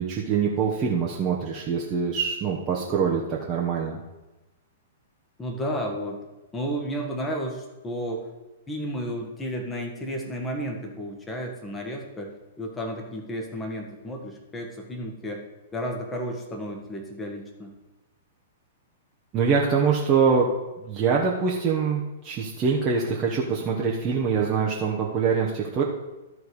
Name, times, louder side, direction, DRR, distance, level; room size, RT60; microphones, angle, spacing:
voice 1, 0.0-4.0 19.3-20.5 20.8-25.8, right 6 dB, 30° right, -3 dB, 1.2 m, -24 dB
voice 2, 5.4-6.2 6.5-8.3 8.7-15.4 15.7-17.7, equal, 15° left, 1 dB, 1.8 m, -32 dB
13.0 x 4.7 x 5.1 m, 1.1 s
figure-of-eight pair, 105°, 0 cm